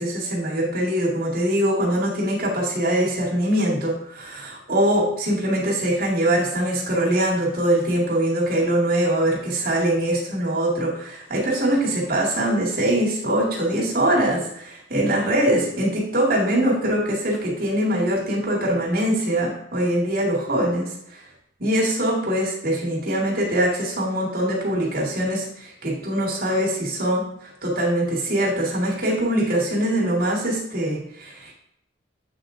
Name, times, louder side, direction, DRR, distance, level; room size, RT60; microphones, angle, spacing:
voice 1, 0.0-20.9 21.6-31.5, right 1 dB, 50° right, -4 dB, 2.1 m, -23 dB
8.4 x 3.7 x 3.8 m, 0.74 s
head